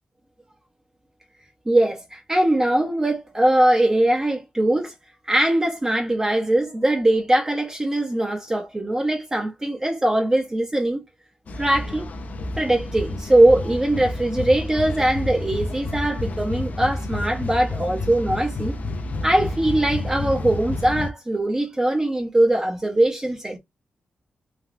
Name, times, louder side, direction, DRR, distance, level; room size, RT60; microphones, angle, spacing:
voice 1, 1.7-4.9 5.3-11.0 11.6-12.1 12.6-18.8 19.2-23.6, right 1 dB, 20° right, 0.7 m, -21 dB
sound 1, 11.5-21.1, left 2 dB, 55° left, 0.5 m, -30 dB
3.3 x 2.3 x 2.4 m
wide cardioid pair, 115°, 3 cm